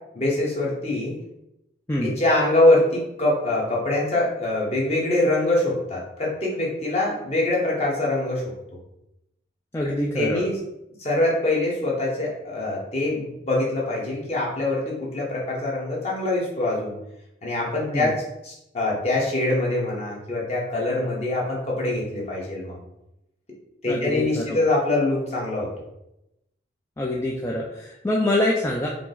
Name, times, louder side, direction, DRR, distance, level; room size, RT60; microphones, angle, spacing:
voice 1, 0.1-1.1 2.0-8.4 10.1-10.6 11.0-16.9 17.4-18.1 18.4-22.8 23.8-25.7, left 2 dB, 35° left, -4 dB, 1.1 m, -24 dB
voice 2, 9.7-10.4 17.9-18.1 23.9-24.6 27.0-28.9, left 1 dB, 15° left, -3 dB, 0.3 m, -25 dB
4.7 x 2.1 x 3.8 m, 0.86 s
head